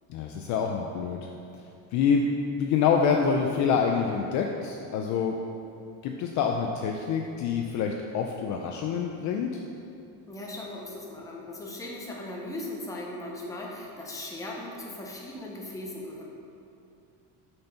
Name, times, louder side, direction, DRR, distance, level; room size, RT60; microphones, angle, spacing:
voice 1, 0.1-1.3 1.9-5.4 6.0-9.6, left 6 dB, 45° left, 2 dB, 0.4 m, -26 dB
voice 2, 10.3-16.2, left 1 dB, 10° left, -2 dB, 0.7 m, -38 dB
6.5 x 4.4 x 5.5 m, 2.7 s
cardioid pair, 160°, 42 cm